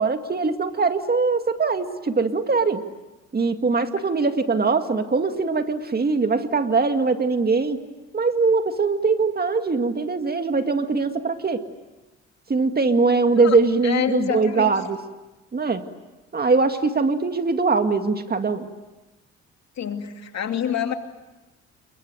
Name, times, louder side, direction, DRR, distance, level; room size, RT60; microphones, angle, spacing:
voice 1, 0.0-2.8 3.3-7.8 8.1-11.6 12.5-15.0 15.5-15.8 16.3-18.7, right 4 dB, 30° right, 7 dB, 2.1 m, -22 dB
voice 2, 13.4-14.7 19.8-20.9, left 9 dB, 60° left, 5 dB, 2.7 m, -27 dB
28.0 x 23.0 x 9.1 m, 1.1 s
cardioid pair, 90°, 30 cm